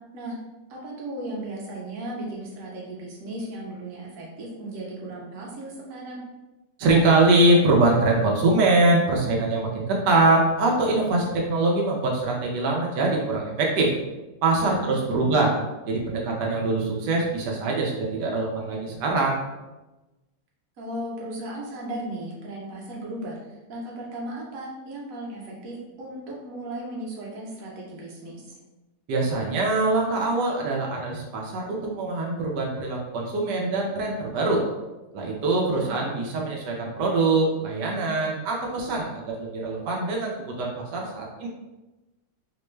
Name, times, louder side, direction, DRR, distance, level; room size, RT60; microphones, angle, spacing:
voice 1, 0.7-6.2 14.7-15.5 20.8-28.4 35.7-36.1, right 1 dB, 60° right, -4 dB, 1.2 m, -36 dB
voice 2, 6.8-13.9 14.4-15.5 15.9-19.4 29.1-34.6 35.1-41.5, right 2 dB, 85° right, -2 dB, 1.2 m, -23 dB
3.2 x 2.1 x 3.1 m, 1.1 s
omnidirectional pair, 1.8 m